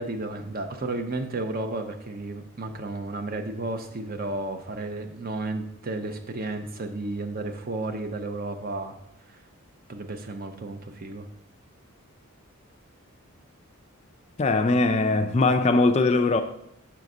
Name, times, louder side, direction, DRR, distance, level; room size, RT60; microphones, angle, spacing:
voice 1, 0.0-8.9 9.3-9.4 9.9-11.3, right 2 dB, 40° right, 0.6 m, -33 dB
voice 2, 14.4-16.4, left 3 dB, 30° left, 0.3 m, -21 dB
5.8 x 4.0 x 6.0 m
head